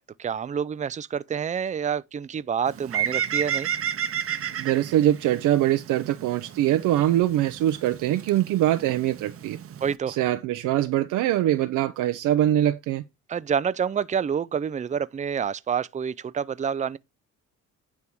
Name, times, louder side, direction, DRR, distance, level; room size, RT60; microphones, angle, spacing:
voice 1, 0.0-3.7 9.8-10.2 13.3-17.0, right 7 dB, 25° right, 0.5 m, -28 dB
Bird, 2.7-10.0, right 9 dB, 50° right, 0.8 m, -32 dB
voice 2, 4.6-9.6 10.1-13.0, right 13 dB, 85° right, 0.7 m, -23 dB
9.7 x 3.5 x 6.0 m
cardioid pair, 90°, 30 cm